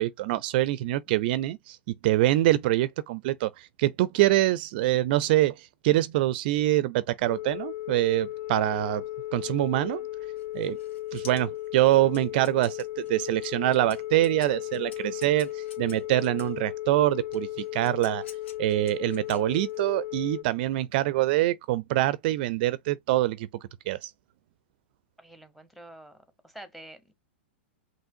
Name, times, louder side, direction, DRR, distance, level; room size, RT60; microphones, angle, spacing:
voice 1, 0.0-9.0 9.3-10.0 10.5-10.8 11.1-18.2 18.6-23.5 23.9-24.1, right 16 dB, 55° right, 0.4 m, -25 dB
Telephone, 7.2-20.4, left 15 dB, 55° left, 0.4 m, -36 dB
sound 1, 10.4-16.6 17.3-19.9, left 6 dB, 70° left, 1.8 m, -51 dB
voice 2, 25.2-26.2 26.4-27.1, right 1 dB, ahead, 1.1 m, -47 dB
5.5 x 3.0 x 2.7 m
hypercardioid pair, 115°, 6 cm